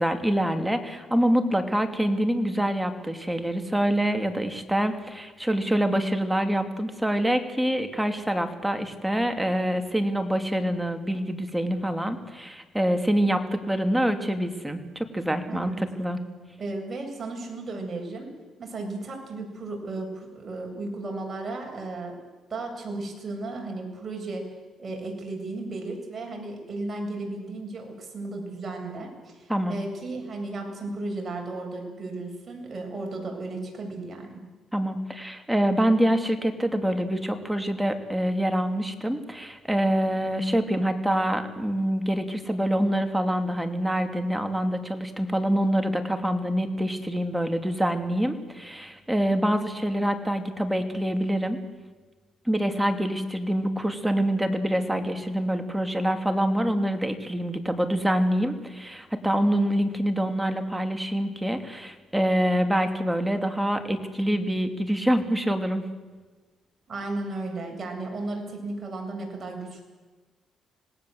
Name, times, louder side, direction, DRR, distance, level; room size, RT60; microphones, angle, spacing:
voice 1, 0.0-16.2 29.5-29.8 34.7-51.6 52.5-65.9, equal, 5° right, 6 dB, 2.9 m, -25 dB
voice 2, 15.5-15.8 16.6-18.3 18.6-22.2 22.5-24.4 24.8-34.4 66.9-69.8, right 2 dB, 35° right, 2 dB, 7.9 m, -34 dB
26.5 x 19.0 x 8.0 m, 1.3 s
cardioid pair, 90°, 0 cm